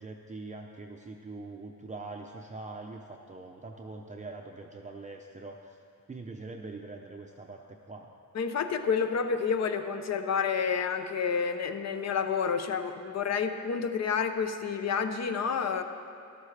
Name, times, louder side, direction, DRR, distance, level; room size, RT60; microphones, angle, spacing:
voice 1, 0.0-5.8 6.1-8.1, right 3 dB, 25° right, 1 dB, 0.5 m, -43 dB
voice 2, 8.3-15.8, left 6 dB, 55° left, 8 dB, 0.7 m, -29 dB
13.0 x 12.5 x 3.3 m, 2.6 s
wide cardioid pair, 145°, 33 cm